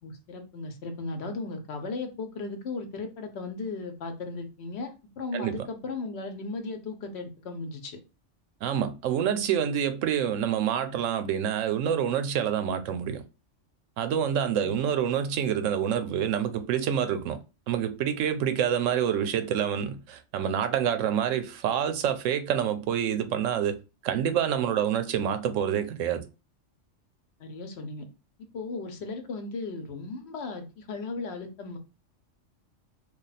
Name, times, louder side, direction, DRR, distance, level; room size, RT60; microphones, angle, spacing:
voice 1, 0.0-8.0 14.6-14.8 27.4-28.1 28.5-31.8, left 3 dB, 65° left, 0.9 m, -36 dB
voice 2, 5.3-5.7 8.6-13.2 14.0-17.4 17.7-26.3, right 9 dB, 90° right, 1.0 m, -27 dB
3.3 x 2.3 x 4.0 m
omnidirectional pair, 1.3 m